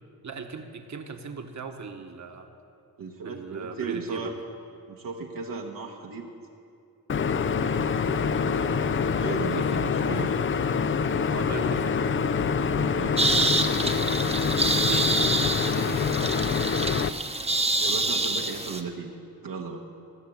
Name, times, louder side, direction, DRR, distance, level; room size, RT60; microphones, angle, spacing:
voice 1, 0.2-2.5 3.2-4.4 9.5-10.4 11.2-12.1 14.8-15.1 15.8-16.4, right 5 dB, 50° right, 5 dB, 1.2 m, -38 dB
voice 2, 3.0-4.4 4.9-6.3 7.4-8.4 9.2-10.4 12.5-13.6 17.8-19.1 19.4-19.8, right 5 dB, 65° right, 0 dB, 1.1 m, -36 dB
sound 1, 7.1-17.1, left 6 dB, 35° left, 0.4 m, -25 dB
sound 2, 13.2-18.8, right 2 dB, 15° right, 0.9 m, -26 dB
16.5 x 6.6 x 8.0 m, 2.5 s
cardioid pair, 70°, 37 cm